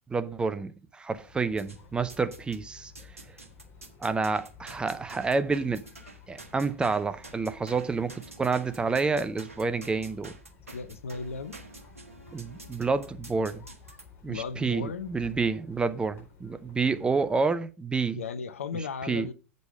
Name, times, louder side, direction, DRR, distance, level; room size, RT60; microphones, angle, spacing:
voice 1, 0.1-2.9 4.0-5.8 6.3-10.3 12.3-13.6 14.2-18.2 19.0-19.3, right 4 dB, 10° right, 0.6 m, -29 dB
sound 1, 1.1-17.4, left 5 dB, 30° left, 4.2 m, -53 dB
sound 2, 1.6-2.6 3.0-14.0, right 3 dB, 85° right, 1.3 m, -48 dB
voice 2, 10.7-11.6 14.3-15.1 16.8-17.1 18.2-19.3, left 5 dB, 75° left, 0.8 m, -36 dB
8.2 x 5.3 x 4.8 m
figure-of-eight pair, 95°, 7 cm